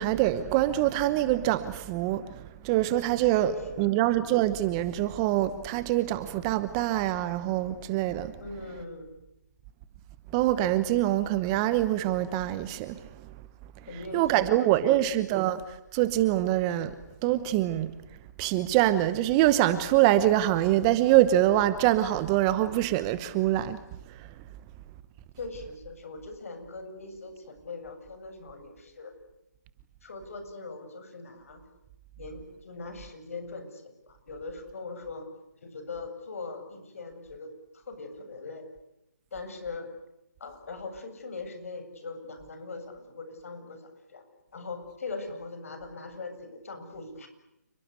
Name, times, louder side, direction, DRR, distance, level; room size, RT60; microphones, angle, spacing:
voice 1, 0.0-3.5 3.8-8.3 10.3-13.0 14.1-15.6 15.9-16.9 17.2-17.9 18.4-23.8, right 14 dB, 20° right, 1.0 m, -24 dB
voice 2, 3.4-4.0 8.4-9.1 13.9-15.5 25.4-29.2 30.0-31.6 32.2-35.3 35.6-38.7 39.3-39.9 40.4-44.2 44.5-47.3, left 3 dB, 50° left, 7.7 m, -41 dB
29.0 x 22.0 x 8.1 m
figure-of-eight pair, 155°, 9 cm